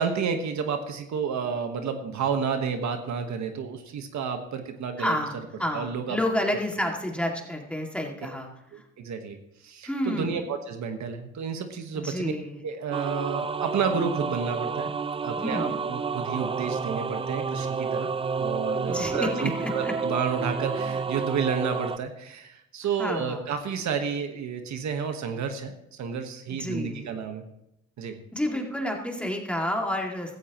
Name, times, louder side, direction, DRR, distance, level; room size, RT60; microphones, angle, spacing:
voice 1, 0.0-5.1 5.7-6.2 8.7-9.4 9.6-12.3 12.6-14.9 15.2-18.1 18.4-27.4 28.0-28.1, right 6 dB, 70° right, 6 dB, 1.4 m, -30 dB
voice 2, 5.0-8.5 9.8-10.4 11.9-12.6 15.4-15.8 18.9-19.9 23.0-23.4 26.5-27.2 28.3-30.4, left 1 dB, 5° left, 1 dB, 2.4 m, -30 dB
sound 1, 12.9-22.0, right 5 dB, 20° right, 0.3 m, -30 dB
16.0 x 14.0 x 3.1 m, 0.81 s
cardioid pair, 90°, 30 cm